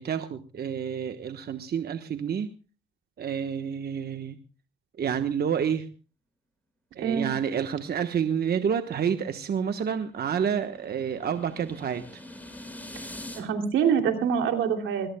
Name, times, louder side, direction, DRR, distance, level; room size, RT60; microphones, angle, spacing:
voice 1, 0.0-2.5 3.2-4.4 5.0-5.9 6.9-12.2, right 7 dB, 55° right, 8 dB, 1.2 m, -29 dB
sound 1, 9.2-13.4, left 1 dB, 10° left, 5.9 m, -44 dB
voice 2, 13.4-15.1, right 7 dB, 85° right, 5 dB, 2.9 m, -25 dB
21.5 x 20.5 x 2.3 m, 0.36 s
cardioid pair, 90°, 20 cm